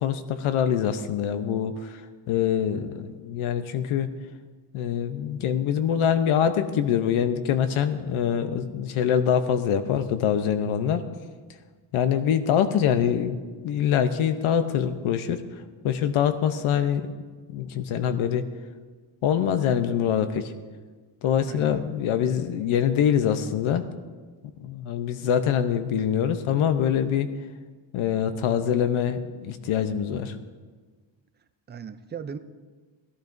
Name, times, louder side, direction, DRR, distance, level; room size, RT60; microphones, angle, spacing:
voice 1, 0.0-2.0 2.3-4.1 4.7-11.1 11.9-13.4 13.6-17.1 17.5-18.5 19.2-20.5 21.2-23.9 24.6-27.3 27.9-30.4, left 8 dB, 80° left, 10 dB, 0.9 m, -24 dB
voice 2, 21.4-21.9 31.7-32.4, right 7 dB, 25° right, 10 dB, 0.4 m, -37 dB
17.5 x 14.5 x 2.6 m, 1.4 s
cardioid pair, 160°, 48 cm